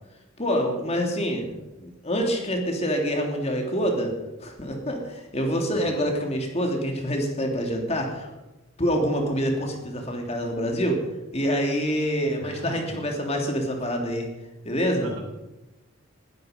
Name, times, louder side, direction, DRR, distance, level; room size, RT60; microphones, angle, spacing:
voice 1, 0.4-1.5 1.8-4.1 4.4-8.3 8.8-11.0 11.3-14.3 14.6-15.1, equal, 30° left, 2 dB, 3.0 m, -26 dB
voice 2, 12.4-13.0 15.0-15.2, right 1 dB, 90° right, -1 dB, 4.4 m, -38 dB
19.0 x 13.5 x 5.3 m, 1.0 s
head